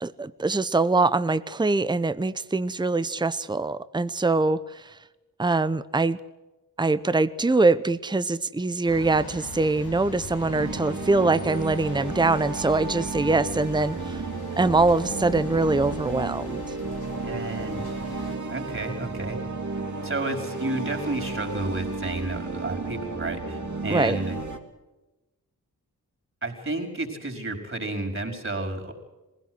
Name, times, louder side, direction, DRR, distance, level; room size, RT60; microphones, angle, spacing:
voice 1, 0.0-5.0 5.4-6.2 6.8-14.2 14.6-16.6 23.9-24.2, right 3 dB, 10° right, 15 dB, 0.8 m, -23 dB
sound 1, 8.9-18.4, left 4 dB, 90° left, 2.3 m, -42 dB
sound 2, 10.1-24.6, right 3 dB, 50° right, 2.7 m, -33 dB
voice 2, 17.2-17.9 18.5-19.4 20.0-24.4 26.4-28.9, right 2 dB, 35° right, 2 dB, 5.2 m, -31 dB
21.0 x 16.5 x 8.0 m, 1.1 s
cardioid pair, 50°, 36 cm